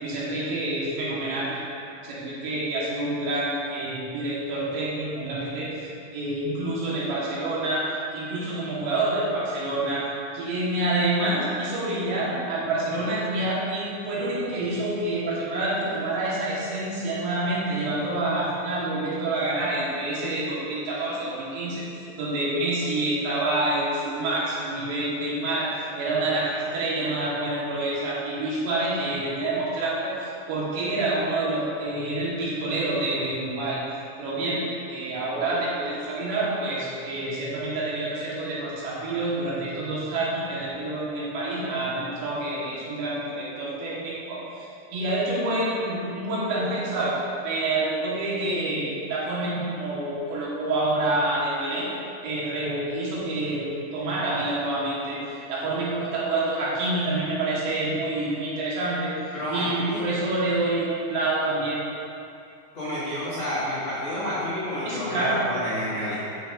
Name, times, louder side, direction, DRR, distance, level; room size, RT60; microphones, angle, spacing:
voice 1, 0.0-1.6 2.0-7.8 8.1-10.0 10.3-21.8 22.2-33.8 34.2-34.6 34.9-47.1 47.4-51.9 52.2-53.7 53.9-55.2 55.5-59.1 59.5-61.8 64.8-65.4, right 2 dB, 70° right, -7 dB, 3.3 m, -27 dB
voice 2, 59.3-60.0 62.7-66.1, left 1 dB, 65° left, -12 dB, 1.2 m, -30 dB
12.0 x 6.0 x 2.5 m, 2.6 s
omnidirectional pair, 5.3 m